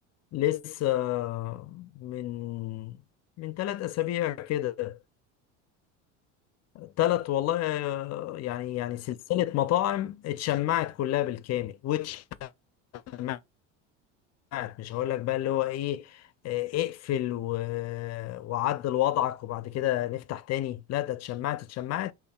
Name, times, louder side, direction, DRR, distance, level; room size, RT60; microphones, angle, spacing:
voice 1, 0.3-3.0 3.4-5.0 6.7-12.5 12.9-13.4 14.5-22.1, left 14 dB, 45° left, 0.5 m, -30 dB
5.2 x 2.5 x 2.2 m
supercardioid pair, 85°, 38 cm